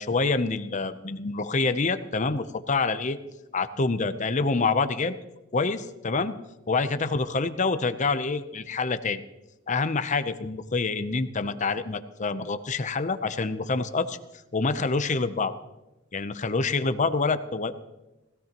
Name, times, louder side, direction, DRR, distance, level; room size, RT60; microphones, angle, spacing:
voice 1, 0.0-3.2 3.5-5.2 5.5-6.3 6.7-9.2 9.7-14.2 14.5-15.5 16.1-17.7, left 3 dB, 40° left, 11 dB, 0.7 m, -26 dB
20.0 x 15.5 x 3.0 m, 1.0 s
head